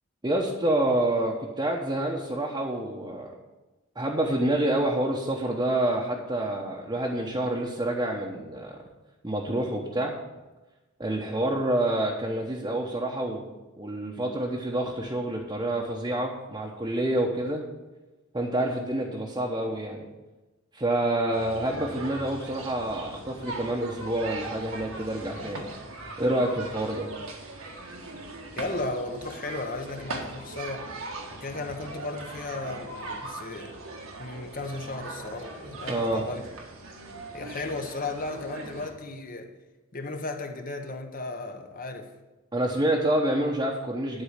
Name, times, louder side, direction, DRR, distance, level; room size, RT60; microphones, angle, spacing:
voice 1, 0.2-3.3 4.0-8.8 9.2-10.1 11.0-13.5 13.8-17.6 18.3-20.1 20.7-25.7 26.2-27.1 35.9-36.2 42.5-44.2, right 1 dB, 20° right, -2 dB, 1.0 m, -27 dB
sound 1, 21.3-38.9, right 2 dB, 80° right, 1.6 m, -40 dB
voice 2, 28.6-30.9 31.4-33.8 34.2-36.4 37.3-39.5 39.9-42.1, left 2 dB, 40° left, 5 dB, 1.0 m, -35 dB
11.5 x 4.7 x 8.1 m, 1.1 s
head